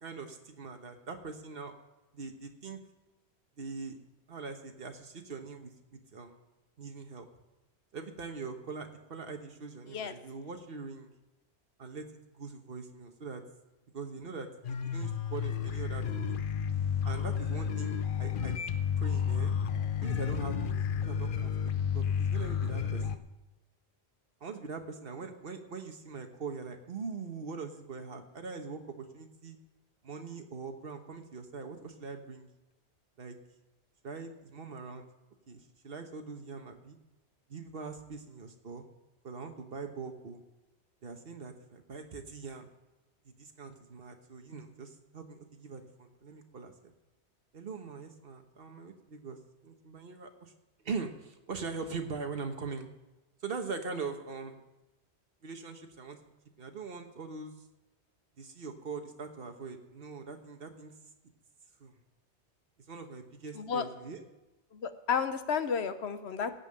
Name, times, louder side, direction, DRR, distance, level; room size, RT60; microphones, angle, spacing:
voice 1, 0.0-1.7 2.1-2.8 3.6-4.0 4.3-6.4 6.8-7.3 7.9-11.1 11.8-12.1 12.3-13.4 13.9-16.5 17.0-18.5 19.0-19.5 20.0-23.2 24.4-29.6 30.0-32.5 33.2-33.4 34.0-35.1 35.5-37.0 37.5-38.8 39.2-40.4 41.0-42.7 43.2-46.9 47.5-49.4 49.6-50.5 50.8-52.9 53.4-54.6 55.4-56.2 56.6-57.5 58.4-60.9 61.8-62.0 62.9-64.2, right 4 dB, 60° right, 5 dB, 1.4 m, -42 dB
sound 1, 14.6-23.2, left 7 dB, 55° left, 0.8 m, -31 dB
voice 2, 63.5-63.8 64.7-66.6, left 6 dB, 75° left, 10 dB, 1.1 m, -32 dB
16.0 x 5.6 x 8.7 m, 1.0 s
omnidirectional pair, 1.1 m